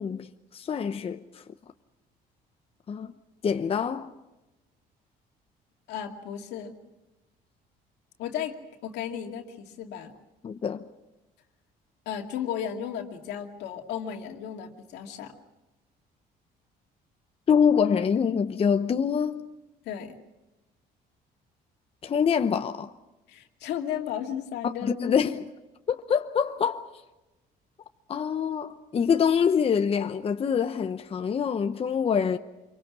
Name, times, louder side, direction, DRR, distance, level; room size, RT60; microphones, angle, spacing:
voice 1, 0.0-1.4 2.9-3.1 3.4-4.1 10.4-10.9 17.5-19.5 22.0-22.9 24.6-25.4 25.9-26.9 28.1-32.4, left 7 dB, 35° left, 0.9 m, -25 dB
voice 2, 5.9-6.7 8.2-10.2 12.1-15.3 19.8-20.2 23.3-25.1, left 9 dB, 85° left, 2.4 m, -34 dB
26.5 x 23.5 x 6.2 m
cardioid pair, 110°, 17 cm